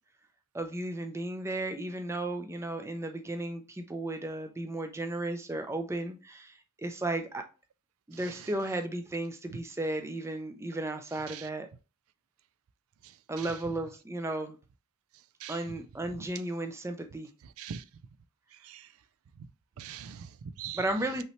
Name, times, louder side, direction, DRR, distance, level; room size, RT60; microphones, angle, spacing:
voice 1, 0.5-7.4 8.1-11.7 13.3-14.6 15.5-17.3 20.7-21.2, right 2 dB, 15° right, 0.5 m, -34 dB
voice 2, 8.1-8.5 9.5-9.6 11.3-11.5 13.0-13.6 15.4-15.8 16.1-16.3 17.4-17.8 18.5-18.9 19.3-19.5 19.8-20.9, right 7 dB, 80° right, 0.4 m, -43 dB
5.5 x 3.1 x 3.0 m
head